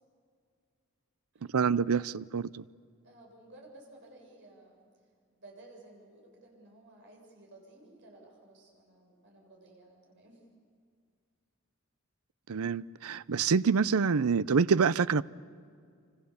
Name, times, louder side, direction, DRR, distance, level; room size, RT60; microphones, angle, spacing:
voice 1, 1.5-2.6 12.5-15.2, right 5 dB, 80° right, 19 dB, 0.6 m, -26 dB
voice 2, 3.0-4.9 5.3-10.4, right 2 dB, 60° right, 0 dB, 7.3 m, -55 dB
27.5 x 25.5 x 7.2 m, 2.2 s
head